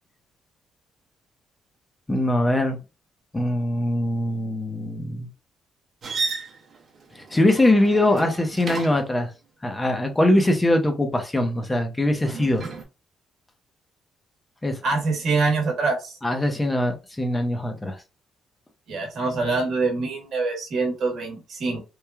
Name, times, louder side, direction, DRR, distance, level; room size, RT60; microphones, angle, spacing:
voice 1, 2.1-2.8 3.3-5.3 7.1-9.3 9.6-12.7 14.6-14.8 16.2-18.0, left 1 dB, 15° left, 5 dB, 0.6 m, -22 dB
sound 1, 6.0-9.2 12.2-12.8, right 4 dB, 50° right, 0.7 m, -33 dB
voice 2, 14.8-16.2 18.9-21.8, right 3 dB, 65° right, 1 dB, 1.1 m, -24 dB
3.0 x 2.2 x 2.3 m, 0.29 s
cardioid pair, 90°, 0 cm